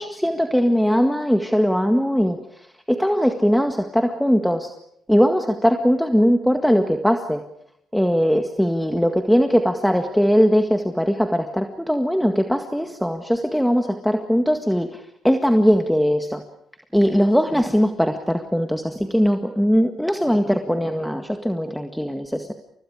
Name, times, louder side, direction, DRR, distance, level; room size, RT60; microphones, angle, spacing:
voice 1, 0.0-2.4 2.9-4.7 5.1-7.4 7.9-16.4 16.9-22.5, equal, ahead, 5 dB, 1.9 m, -20 dB
30.0 x 27.5 x 5.0 m, 0.72 s
cardioid pair, 90°, 0 cm